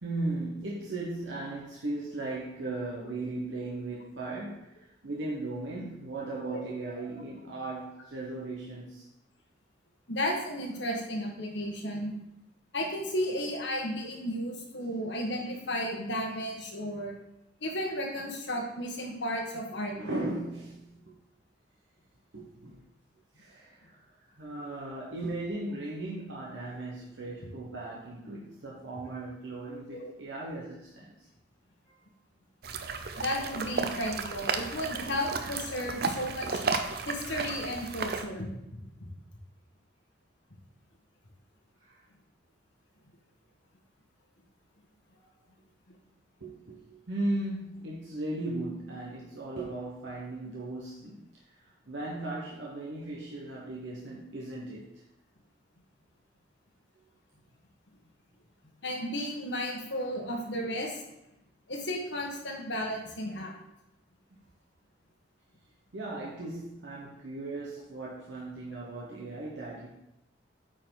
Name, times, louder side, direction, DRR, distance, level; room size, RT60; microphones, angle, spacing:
voice 1, 0.0-9.1 19.9-21.0 22.3-22.8 23.4-24.1 24.4-31.1 31.9-32.0 41.8-42.0 46.4-54.8 65.9-69.9, right 2 dB, 75° right, -4 dB, 1.1 m, -37 dB
voice 2, 10.1-12.1 12.7-17.1 17.6-20.2 29.9-30.1 33.2-36.6 37.0-38.8 45.9-46.0 58.8-61.0 61.7-63.5, equal, 70° left, 0 dB, 1.6 m, -33 dB
sound 1, 32.6-38.2, right 4 dB, 55° right, 0.6 m, -33 dB
8.8 x 4.7 x 3.9 m, 0.86 s
head